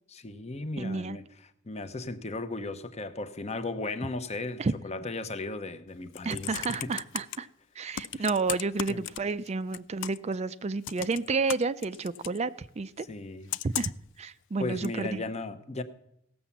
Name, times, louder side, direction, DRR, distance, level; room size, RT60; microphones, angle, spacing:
voice 1, 0.1-1.2 1.6-6.9 8.2-8.3 8.9-9.1 13.0-13.5 14.6-15.8, left 2 dB, 30° left, 0.8 m, -36 dB
voice 2, 0.8-1.2 4.6-4.7 6.2-7.5 7.8-13.1 13.6-13.9 14.2-15.2, right 4 dB, 30° right, 0.4 m, -30 dB
Computer keyboard, 5.9-7.4 7.9-9.5 9.7-10.3 10.8-12.4 13.5-14.1 14.8-14.9, left 13 dB, 60° left, 0.4 m, -36 dB
17.0 x 6.8 x 7.3 m
head